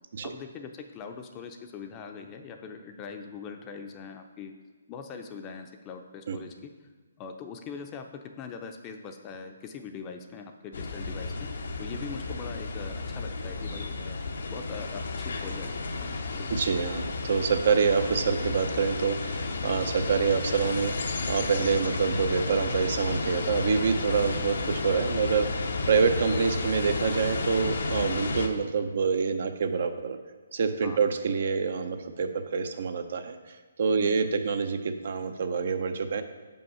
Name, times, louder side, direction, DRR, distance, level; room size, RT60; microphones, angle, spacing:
voice 1, 0.2-4.5 4.9-6.7 7.2-14.2 14.5-15.7 16.0-16.5 30.8-31.0 33.9-34.2, left 5 dB, 25° left, 5 dB, 0.5 m, -42 dB
sound 1, 10.7-28.5, left 3 dB, 70° left, 0.7 m, -32 dB
voice 2, 16.5-25.6 25.9-30.2 30.5-36.2, right 5 dB, 55° right, 8 dB, 0.6 m, -27 dB
5.5 x 5.2 x 5.6 m, 1.4 s
hypercardioid pair, 145°, 0 cm